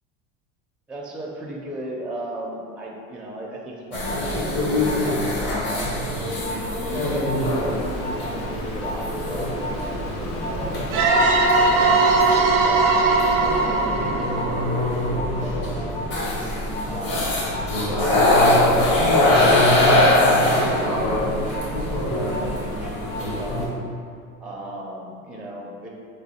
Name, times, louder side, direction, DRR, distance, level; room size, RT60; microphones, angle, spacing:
voice 1, 0.9-5.3 5.6-6.2 6.9-10.0 10.4-11.0 11.8-14.7 15.0-16.0 16.9-19.6 19.9-23.7 24.4-25.9, right 1 dB, 5° right, -3 dB, 0.4 m, -36 dB
sound 1, 3.9-23.7, left 1 dB, 65° left, 1.2 m, -23 dB
Stream, 7.3-12.4, left 2 dB, 50° left, 0.7 m, -37 dB
sound 2, 10.9-15.5, right 3 dB, 70° right, 0.6 m, -20 dB
3.1 x 2.3 x 4.1 m, 2.5 s
supercardioid pair, 100°, 36 cm